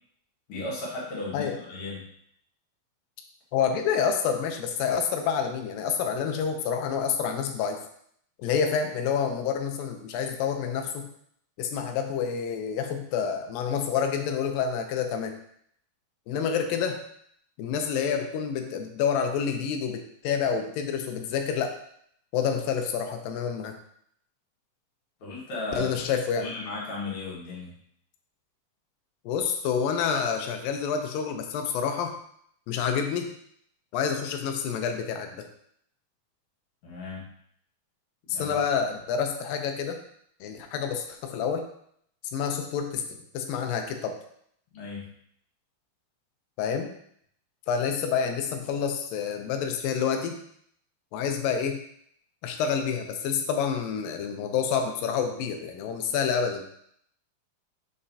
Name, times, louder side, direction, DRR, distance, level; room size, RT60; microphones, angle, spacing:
voice 1, 0.5-2.0 25.2-26.0 26.4-27.7 36.8-37.3 38.3-38.5 44.7-45.1, left 2 dB, 60° left, -5 dB, 2.8 m, -35 dB
voice 2, 3.5-7.8 8.4-11.1 11.6-15.3 16.3-17.0 17.6-21.7 22.3-23.7 25.8-26.5 29.3-32.1 32.7-33.3 33.9-35.4 38.3-40.0 40.4-41.7 42.3-44.2 46.6-46.9 47.7-50.4 51.1-51.8 52.4-56.6, left 7 dB, 80° left, 5 dB, 2.4 m, -28 dB
7.0 x 5.4 x 2.7 m, 0.68 s
omnidirectional pair, 4.1 m